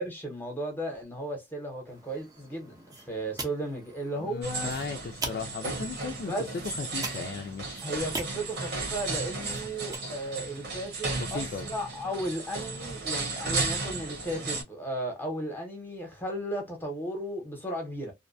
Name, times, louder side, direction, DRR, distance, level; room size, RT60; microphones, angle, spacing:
voice 1, 0.0-4.7 6.3-6.5 7.8-18.1, right 1 dB, 10° left, 0.8 m, -35 dB
lump hammer wooden handle general handling foley, 1.9-10.0, right 3 dB, 20° right, 0.5 m, -43 dB
voice 2, 4.2-7.8 11.2-11.7, left 5 dB, 55° left, 0.3 m, -36 dB
sound 1, 4.4-14.6, right 3 dB, 65° right, 0.9 m, -34 dB
2.6 x 2.1 x 2.5 m
head